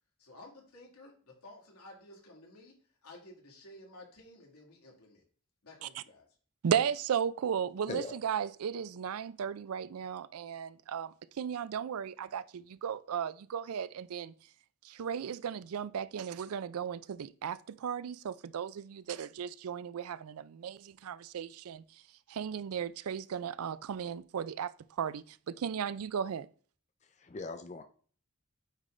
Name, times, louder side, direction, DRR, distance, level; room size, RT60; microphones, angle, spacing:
voice 1, 0.2-5.2 5.6-6.3, left 1 dB, 85° left, 2.2 m, -54 dB
voice 2, 6.6-14.3 14.8-21.8 22.3-24.7 25.0-26.5, right 8 dB, 75° right, 0.4 m, -35 dB
voice 3, 27.0-27.8, left 3 dB, 30° left, 0.5 m, -40 dB
8.9 x 3.7 x 3.2 m
head